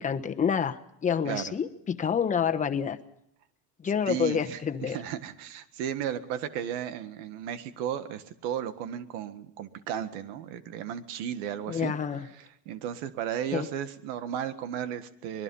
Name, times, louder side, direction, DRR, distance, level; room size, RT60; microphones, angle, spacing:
voice 1, 0.0-3.0 3.8-5.0 11.7-12.2 13.5-13.7, left 7 dB, 25° left, 8 dB, 1.2 m, -28 dB
voice 2, 4.0-11.9 12.3-15.4, right 9 dB, 90° right, 11 dB, 1.8 m, -34 dB
25.0 x 21.0 x 5.6 m, 0.75 s
cardioid pair, 145°, 32 cm